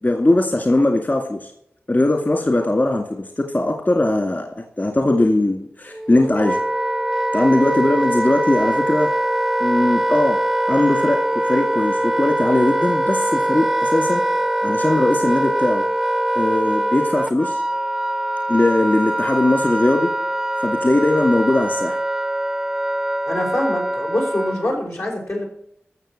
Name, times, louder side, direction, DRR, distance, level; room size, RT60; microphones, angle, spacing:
voice 1, 0.0-1.5 1.9-6.6 7.3-9.1 9.6-10.4 10.7-11.2 11.5-14.2 14.6-15.9 16.3-17.6 18.5-20.1 20.6-22.0, left 2 dB, 45° left, 3 dB, 2.0 m, -19 dB
Wind instrument woodwind instrument, 5.9-24.7, right 1 dB, 10° right, 0.4 m, -22 dB
voice 2, 23.2-25.4, left 1 dB, 85° left, -2 dB, 5.3 m, -24 dB
15.0 x 6.5 x 6.5 m, 0.71 s
wide cardioid pair, 60°, 4 cm